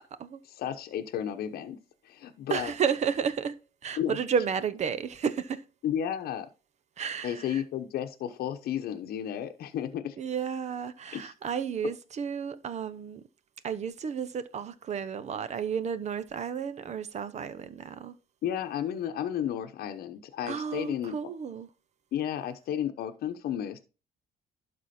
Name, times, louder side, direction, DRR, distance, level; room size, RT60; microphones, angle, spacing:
voice 1, 0.5-1.8 2.0-2.7 4.0-4.2 5.8-6.5 7.2-10.2 11.1-11.3 18.4-21.1 22.1-23.8, left 10 dB, 65° left, 1.0 m, -33 dB
voice 2, 2.5-3.6 3.8-5.6 7.0-7.6 10.2-13.2 13.6-18.2 20.5-21.7, right 7 dB, 45° right, 0.8 m, -32 dB
11.5 x 4.3 x 4.3 m
cardioid pair, 110°, 17 cm